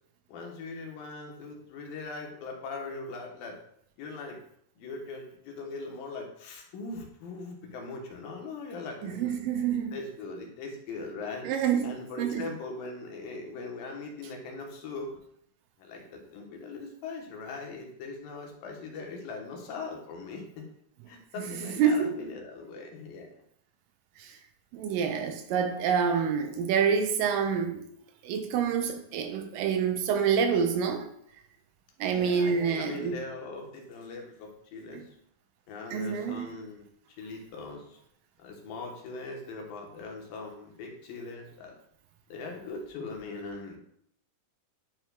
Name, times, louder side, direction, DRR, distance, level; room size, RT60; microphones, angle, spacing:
voice 1, 0.3-3.6 4.0-4.4 4.8-11.5 11.8-15.1 15.8-20.6 21.1-23.4 32.1-35.1 35.7-36.8 37.2-38.0 38.4-41.7 42.3-43.8, left 3 dB, 80° left, 1 dB, 2.9 m, -40 dB
voice 2, 9.0-10.0 11.5-12.5 21.8-22.1 24.2-24.4 24.7-27.8 28.2-31.1 32.0-33.2 34.9-35.0 35.9-36.6, right 7 dB, 80° right, 6 dB, 2.2 m, -27 dB
10.5 x 4.6 x 2.3 m, 0.69 s
omnidirectional pair, 4.0 m